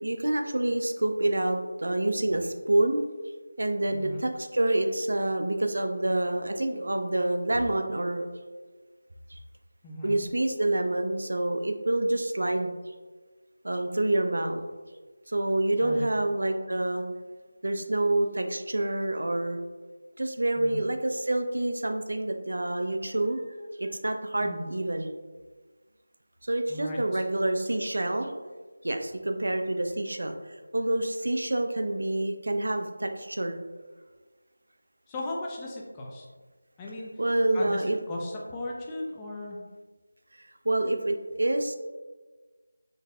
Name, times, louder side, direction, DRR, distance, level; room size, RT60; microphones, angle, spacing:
voice 1, 0.0-3.0 3.6-8.3 9.3-9.4 10.0-12.7 13.6-14.6 15.3-17.0 17.6-19.6 20.2-23.4 23.8-25.1 26.4-28.3 28.8-30.4 30.7-33.6 37.2-38.0 40.7-41.7, right 1 dB, 70° right, 6 dB, 0.4 m, -27 dB
voice 2, 3.9-4.2 9.8-10.2 15.8-16.1 20.6-20.8 24.4-24.7 26.7-27.2 35.1-36.3 36.8-37.1 37.5-39.6, left 1 dB, 15° left, -3 dB, 0.4 m, -37 dB
3.9 x 2.5 x 2.2 m, 1.3 s
figure-of-eight pair, 165°, 0 cm